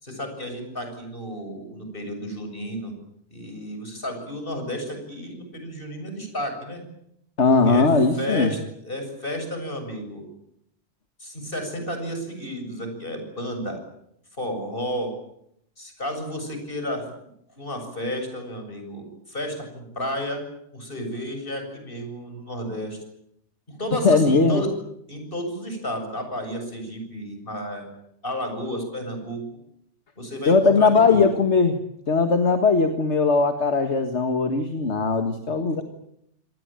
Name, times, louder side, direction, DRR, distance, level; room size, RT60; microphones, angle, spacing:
voice 1, 0.0-2.9 3.3-6.8 7.6-7.9 8.2-10.2 11.2-13.8 14.4-15.1 15.8-17.1 17.6-20.4 20.7-23.0 23.7-24.7 25.1-27.9 28.2-29.4 30.2-31.3 35.7-35.8, equal, 50° left, 5 dB, 7.6 m, -32 dB
voice 2, 7.4-8.5 24.0-24.6 30.5-31.8 32.1-35.8, left 4 dB, 70° left, 7 dB, 2.0 m, -19 dB
27.5 x 19.5 x 9.1 m, 0.75 s
omnidirectional pair, 1.2 m